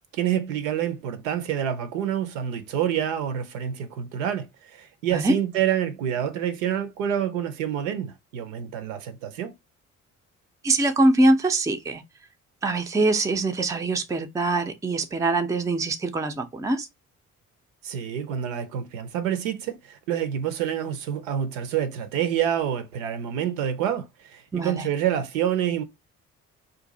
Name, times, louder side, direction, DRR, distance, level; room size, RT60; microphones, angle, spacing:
voice 1, 0.1-9.5 17.8-25.8, right 9 dB, 70° right, 0.7 m, -27 dB
voice 2, 10.6-12.0 12.6-16.9 24.5-24.8, right 2 dB, 10° right, 0.5 m, -23 dB
2.6 x 2.5 x 3.8 m
figure-of-eight pair, 40°, 42 cm